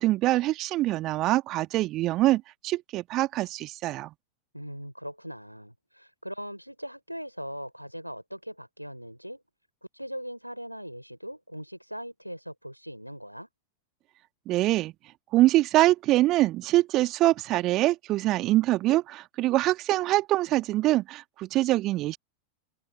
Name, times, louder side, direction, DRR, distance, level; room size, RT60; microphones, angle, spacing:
voice 1, 0.0-4.1 14.5-14.9 15.3-22.2, right 16 dB, 35° right, 2.0 m, -24 dB
voice 2, 4.5-9.4 9.9-13.5, equal, 90° right, 4.8 m, -40 dB
figure-of-eight pair, 90°, 0 cm